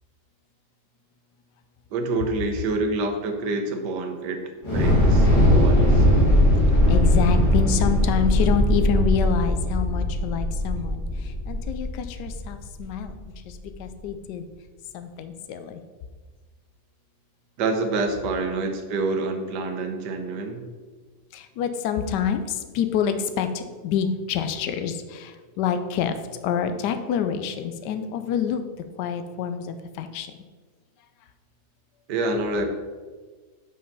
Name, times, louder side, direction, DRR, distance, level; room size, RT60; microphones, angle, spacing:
voice 1, 1.9-4.4 4.7-6.1 17.6-20.7 32.1-32.7, right 3 dB, 80° right, 5 dB, 1.5 m, -27 dB
Thunder / Explosion, 4.6-12.8, left 1 dB, 15° left, 2.1 m, -20 dB
voice 2, 6.9-11.0 11.5-13.1 13.8-14.5 14.9-15.8 21.3-26.2 26.4-28.6 29.0-30.3, left 7 dB, 85° left, 9 dB, 1.2 m, -27 dB
5.5 x 5.4 x 5.4 m, 1.4 s
omnidirectional pair, 1.8 m